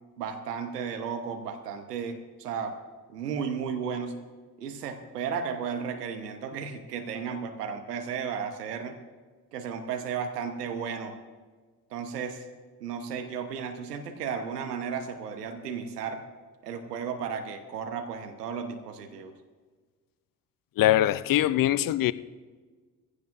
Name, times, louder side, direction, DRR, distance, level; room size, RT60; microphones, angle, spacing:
voice 1, 0.2-2.8 3.1-4.2 4.6-9.0 9.5-11.2 11.9-12.4 12.8-16.2 16.6-19.3, right 6 dB, 80° right, 1.1 m, -34 dB
voice 2, 20.8-22.1, left 13 dB, 45° left, 0.7 m, -22 dB
21.0 x 16.0 x 2.6 m
figure-of-eight pair, 50°, 47 cm